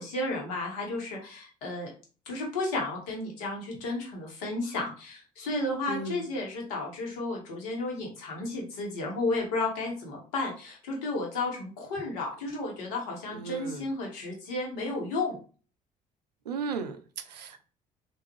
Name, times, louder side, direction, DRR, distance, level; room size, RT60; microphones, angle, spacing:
voice 1, 0.0-1.9 2.3-15.4, left 2 dB, 65° left, 1.2 m, -33 dB
voice 2, 5.9-6.3 13.3-13.9 16.4-17.6, right 4 dB, 85° right, 0.4 m, -36 dB
3.5 x 2.6 x 3.1 m
figure-of-eight pair, 50°, 20 cm